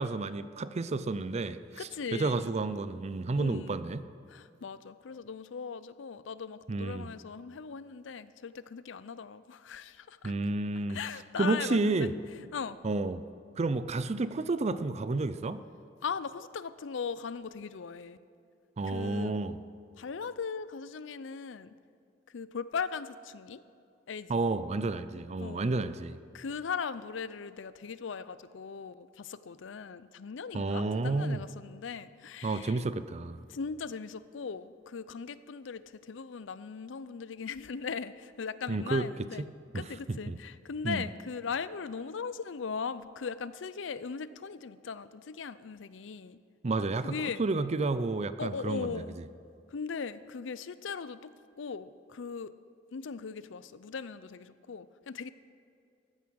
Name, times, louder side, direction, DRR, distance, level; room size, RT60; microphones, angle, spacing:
voice 1, 0.0-4.0 6.7-7.1 10.2-11.0 11.4-12.1 12.8-13.2 13.6-15.6 18.8-19.6 24.3-26.2 30.5-31.4 32.4-33.4 38.7-39.1 39.7-39.8 40.1-40.4 40.8-41.1 46.6-49.0, right 3 dB, 35° right, 13 dB, 0.5 m, -31 dB
voice 2, 1.8-2.5 3.3-3.8 4.3-10.3 10.9-12.1 12.5-12.8 16.0-18.2 18.9-19.4 20.0-21.7 22.3-23.6 24.1-24.4 25.4-25.7 26.3-32.8 33.5-39.4 39.7-46.4 47.0-47.4 48.4-49.2 49.7-52.5 52.9-55.3, left 5 dB, 80° left, 15 dB, 0.5 m, -39 dB
14.5 x 9.4 x 6.3 m, 2.4 s
head